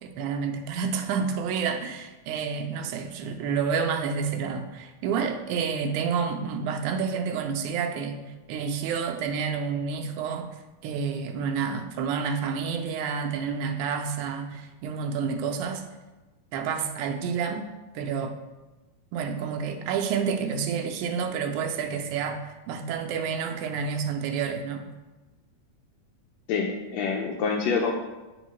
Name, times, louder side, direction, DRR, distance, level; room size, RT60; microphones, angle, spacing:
voice 1, 0.0-8.2 8.5-10.5 10.8-15.8 16.5-18.4 19.1-24.8, right 6 dB, 80° right, 4 dB, 2.0 m, -29 dB
voice 2, 26.5-27.9, left 5 dB, 80° left, 1 dB, 1.5 m, -26 dB
9.4 x 4.5 x 3.1 m, 1.1 s
omnidirectional pair, 3.5 m